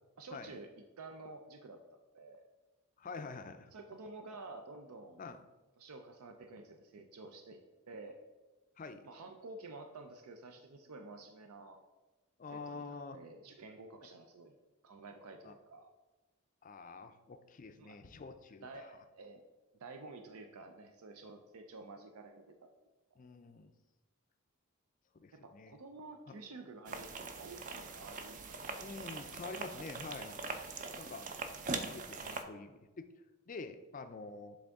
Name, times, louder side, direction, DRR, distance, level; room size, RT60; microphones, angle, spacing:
voice 1, 0.2-0.7 1.0-2.4 3.7-5.2 5.8-7.6 7.9-8.2 9.0-11.8 12.5-14.5 14.8-15.9 17.8-18.0 18.6-19.4 19.8-22.7 25.3-28.8, right 3 dB, 85° right, 5 dB, 0.5 m, -51 dB
voice 2, 3.0-3.7 5.2-5.4 8.8-9.1 12.4-13.2 15.4-15.5 16.6-18.9 23.2-23.7 25.2-25.7 26.3-26.4 28.8-30.4 30.9-31.3 31.8-33.1 33.5-34.6, left 4 dB, 35° left, 9 dB, 0.4 m, -47 dB
sound 1, 26.9-32.4, right 4 dB, 35° right, 0.4 m, -42 dB
7.6 x 3.5 x 3.5 m, 1.1 s
head